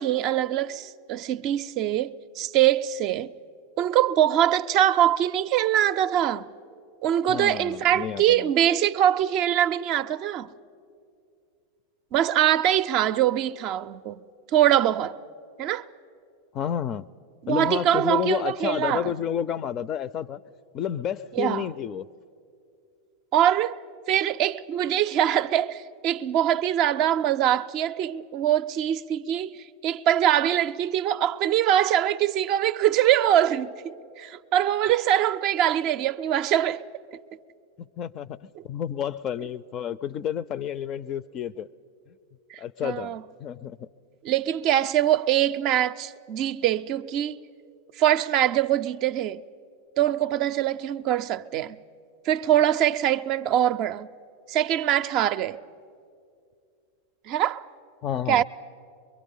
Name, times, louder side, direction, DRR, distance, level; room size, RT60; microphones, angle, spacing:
voice 1, 0.0-3.3 3.8-6.5 7.0-10.5 12.1-14.2 14.5-15.2 15.6-15.9 17.4-19.1 21.3-21.7 23.3-23.8 24.1-36.8 42.5-43.2 44.2-47.4 48.0-49.4 50.0-51.8 52.3-54.1 54.5-55.6 57.3-57.6 58.3-58.4, right 11 dB, 45° right, 0.4 m, -23 dB
voice 2, 7.3-8.5 16.5-17.0 17.5-20.4 20.7-22.1 37.8-41.7 42.6-43.9 58.0-58.4, left 9 dB, 40° left, 0.4 m, -30 dB
23.5 x 23.0 x 5.5 m
figure-of-eight pair, 90°, 0 cm